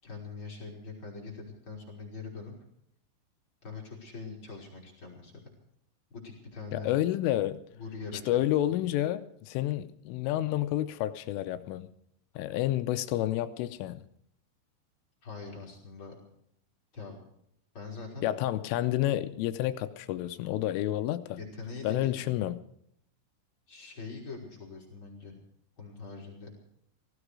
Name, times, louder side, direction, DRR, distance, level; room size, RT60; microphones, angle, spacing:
voice 1, 0.0-2.6 3.6-5.3 6.1-6.9 7.8-8.8 15.2-16.1 16.9-17.2 17.7-18.3 21.4-22.1 23.7-25.4 25.8-26.6, left 4 dB, 25° left, 4.6 m, -43 dB
voice 2, 6.7-7.6 8.3-11.9 12.4-14.1 18.2-21.4 21.8-22.6, left 13 dB, 80° left, 3.1 m, -30 dB
18.0 x 16.0 x 4.9 m
omnidirectional pair, 6.0 m